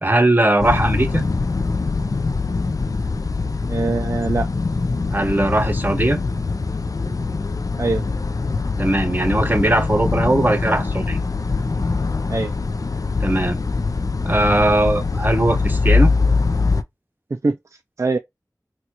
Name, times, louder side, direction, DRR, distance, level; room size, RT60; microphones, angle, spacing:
voice 1, 0.0-1.2 5.1-6.2 8.8-11.2 13.2-13.6 14.2-16.1, right 1 dB, 30° right, 0.9 m, -19 dB
sound 1, 0.6-16.8, left 4 dB, 60° left, 0.4 m, -22 dB
voice 2, 3.7-4.5 7.8-8.0 12.3-12.5 17.3-17.6 18.0-18.2, right 3 dB, 45° right, 0.3 m, -22 dB
4.1 x 2.3 x 2.9 m
wide cardioid pair, 45°, 7 cm